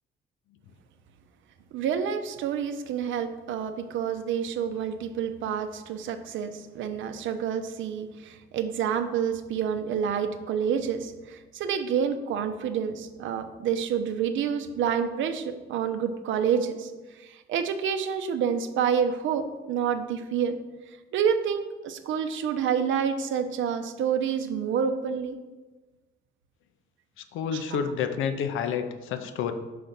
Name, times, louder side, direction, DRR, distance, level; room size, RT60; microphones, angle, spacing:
voice 1, 1.7-20.6 21.1-25.4 27.5-27.8, right 7 dB, 80° right, 8 dB, 0.6 m, -28 dB
voice 2, 27.2-29.5, left 7 dB, 85° left, 9 dB, 0.6 m, -29 dB
5.0 x 3.9 x 5.8 m, 1.2 s
cardioid pair, 90°, 20 cm